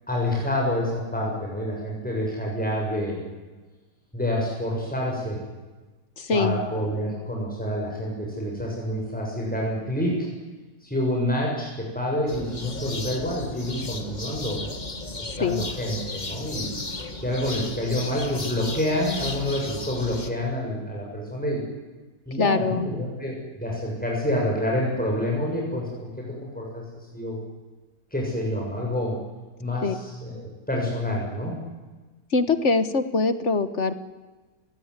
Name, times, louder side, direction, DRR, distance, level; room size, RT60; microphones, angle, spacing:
voice 1, 0.1-3.2 4.1-5.4 6.3-10.3 10.8-14.7 15.1-16.7 17.2-21.6 22.3-27.4 28.1-29.2 29.6-31.6, left 1 dB, 5° left, -2 dB, 6.9 m, -28 dB
voice 2, 6.2-6.6 15.2-15.6 22.4-22.9 29.8-29.9 32.3-34.0, left 4 dB, 45° left, 12 dB, 1.5 m, -23 dB
sound 1, 12.3-20.3, left 2 dB, 25° left, 1.8 m, -35 dB
29.5 x 17.5 x 9.7 m, 1.3 s
omnidirectional pair, 1.8 m